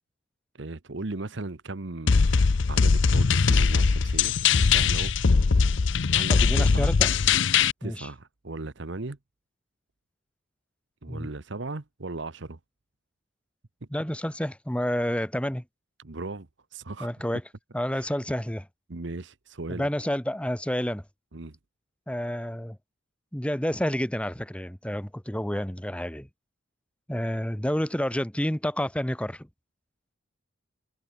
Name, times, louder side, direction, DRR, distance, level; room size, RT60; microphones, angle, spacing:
voice 1, 0.6-2.2 2.7-4.3 4.7-5.1 6.1-6.9 7.8-9.2 11.0-12.6 16.0-17.1 17.9-18.0 18.9-19.9 21.3-21.6, right 2 dB, 60° right, 1.0 m, -37 dB
sound 1, 2.1-7.7, left 5 dB, 60° left, 0.6 m, -21 dB
voice 2, 6.3-7.1 7.8-8.1 11.1-11.3 13.9-15.6 17.0-17.4 17.7-18.7 19.7-21.0 22.1-22.8 23.3-26.3 27.1-29.5, equal, 5° left, 1.1 m, -29 dB
head